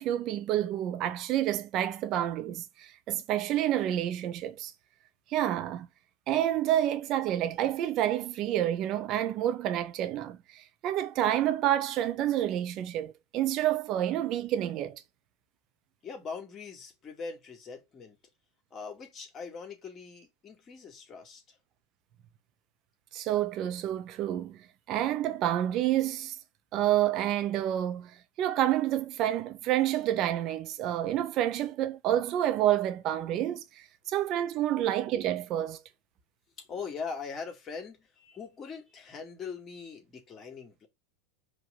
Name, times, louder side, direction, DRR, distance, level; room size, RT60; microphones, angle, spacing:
voice 1, 0.0-4.7 5.3-5.9 6.3-15.0 23.1-24.6 24.9-26.3 26.7-35.8, right 12 dB, 45° right, 1.1 m, -29 dB
voice 2, 16.0-18.2 18.7-21.6 34.8-34.9 36.6-40.9, left 5 dB, 35° left, 2.6 m, -41 dB
5.1 x 3.4 x 5.5 m
hypercardioid pair, 90°, 0 cm